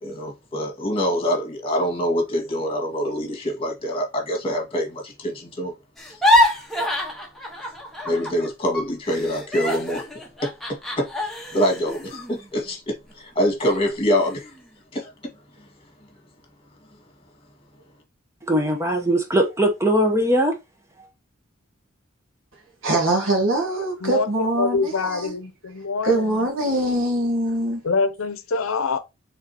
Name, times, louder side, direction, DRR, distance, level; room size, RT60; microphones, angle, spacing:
voice 1, 0.0-5.7 6.1-6.2 8.0-10.0 10.4-10.5 11.0-11.1 11.5-14.5 14.9-15.1, equal, 30° left, 1.9 m, -25 dB
sound 1, 6.0-8.5 8.7-13.1 13.6-13.8 14.2-14.7, left 1 dB, ahead, 1.1 m, -25 dB
voice 2, 18.5-20.5, right 1 dB, 15° right, 0.9 m, -20 dB
voice 3, 22.8-25.3 26.0-27.8, right 1 dB, 70° right, 1.8 m, -23 dB
voice 4, 24.6-26.4 27.8-29.0, left 4 dB, 90° left, 0.7 m, -25 dB
4.9 x 3.8 x 2.9 m
head